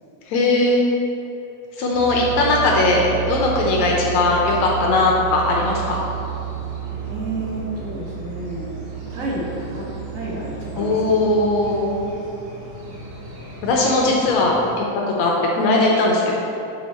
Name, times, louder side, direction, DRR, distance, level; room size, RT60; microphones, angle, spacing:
voice 1, 0.3-0.8 1.8-6.0 10.8-12.0 13.6-14.5 14.8-14.9 15.2-16.4, left 2 dB, 75° left, -2 dB, 1.9 m, -19 dB
sound 1, 1.9-14.8, right 8 dB, 75° right, 2.7 m, -32 dB
voice 2, 7.1-8.8 9.1-11.2 13.6-14.1 15.1-15.2, right 1 dB, 50° right, -5 dB, 1.0 m, -30 dB
7.0 x 6.4 x 4.3 m, 2.9 s
omnidirectional pair, 3.6 m